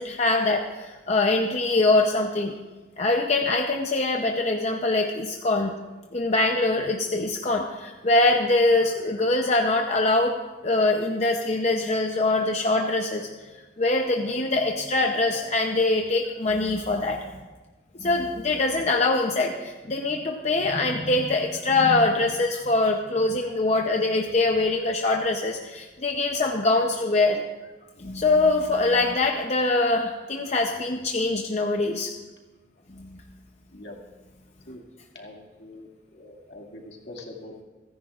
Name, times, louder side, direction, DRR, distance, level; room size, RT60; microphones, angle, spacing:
voice 1, 0.0-2.5 3.0-5.7 6.1-10.4 10.6-13.3 13.8-17.2 17.9-27.4 28.0-32.1 33.0-33.2, left 2 dB, 35° left, 2 dB, 0.7 m, -23 dB
voice 2, 16.5-16.9 22.5-22.6 29.0-29.1 33.7-33.9 34.7-34.8 35.1-35.9 36.1-37.6, left 2 dB, 65° left, -1 dB, 2.2 m, -44 dB
29.0 x 10.5 x 2.5 m, 1.2 s
head